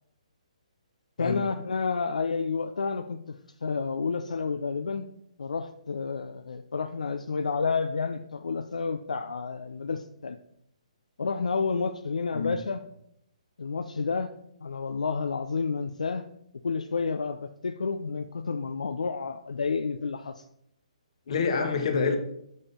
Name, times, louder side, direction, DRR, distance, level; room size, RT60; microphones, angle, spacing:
voice 1, 1.2-3.4 3.6-5.1 5.4-10.4 11.2-12.8 13.6-14.3 14.6-16.2 16.6-20.4, left 4 dB, 75° left, 7 dB, 0.4 m, -30 dB
voice 2, 21.3-22.2, left 5 dB, 55° left, 6 dB, 1.3 m, -27 dB
5.4 x 5.2 x 5.6 m, 0.74 s
figure-of-eight pair, 140°, 4 cm